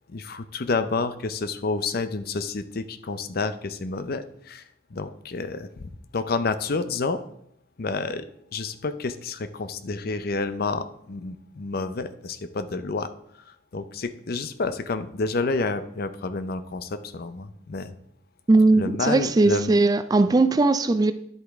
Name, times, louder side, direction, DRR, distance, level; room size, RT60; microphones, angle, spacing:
voice 1, 0.1-4.6 4.9-7.2 7.8-8.3 8.5-13.1 13.5-17.9 18.7-19.7, left 3 dB, 50° left, 11 dB, 0.6 m, -29 dB
voice 2, 18.5-21.1, right 2 dB, 20° right, 12 dB, 0.3 m, -19 dB
10.5 x 7.9 x 3.5 m, 0.73 s
head